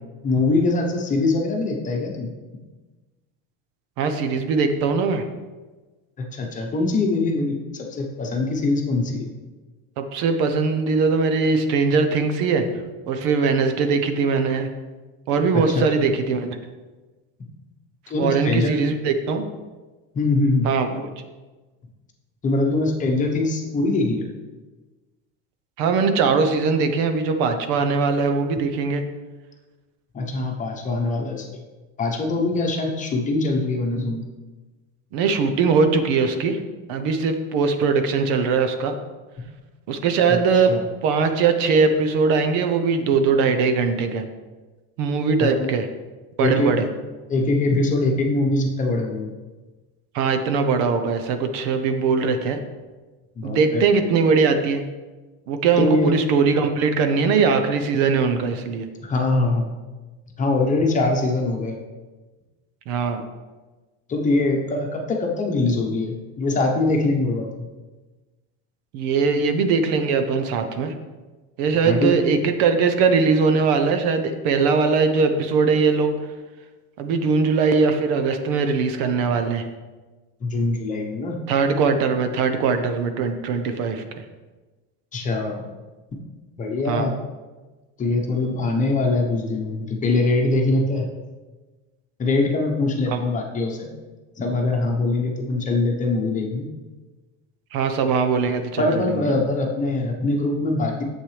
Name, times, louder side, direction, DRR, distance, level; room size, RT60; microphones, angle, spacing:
voice 1, 0.2-2.3 6.3-9.3 15.5-15.8 18.1-18.7 20.1-20.7 22.4-24.3 30.1-31.5 32.0-34.2 40.3-40.8 45.4-45.7 46.4-46.8 47.3-49.3 53.4-53.8 55.8-56.1 59.0-59.7 60.4-61.8 64.1-67.6 71.8-72.1 80.4-81.4 85.1-85.6 86.1-86.2 86.6-87.2 88.0-91.1 92.2-93.9 94.4-96.7 98.8-101.0, left 2 dB, 20° left, 2 dB, 1.0 m, -23 dB
voice 2, 4.0-5.2 10.0-12.7 13.1-14.7 15.3-16.6 18.2-19.5 20.6-21.1 25.8-29.0 35.1-36.6 36.9-39.0 39.9-40.7 41.0-44.2 45.0-45.9 46.4-46.9 50.1-52.6 53.4-54.8 55.5-58.9 62.9-63.2 68.9-70.9 71.6-76.2 77.0-79.7 81.5-84.0 86.9-87.1 93.1-93.2 97.7-99.3, right 5 dB, 65° right, 8 dB, 0.9 m, -21 dB
9.1 x 7.4 x 3.3 m, 1.2 s
cardioid pair, 160°, 34 cm